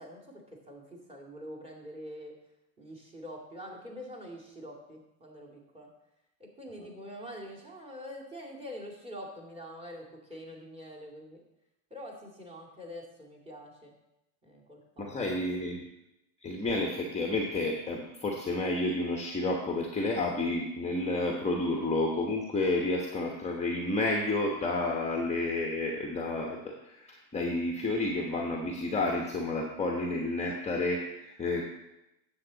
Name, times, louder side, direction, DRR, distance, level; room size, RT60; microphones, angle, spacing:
voice 1, 0.0-2.3 2.8-5.9 6.4-11.4 11.9-13.9 14.4-15.7, equal, 10° right, -1 dB, 2.3 m, -45 dB
voice 2, 15.0-15.8 16.4-31.6, left 2 dB, 15° left, 0 dB, 1.1 m, -30 dB
9.5 x 7.4 x 4.0 m, 0.89 s
hypercardioid pair, 115°, 48 cm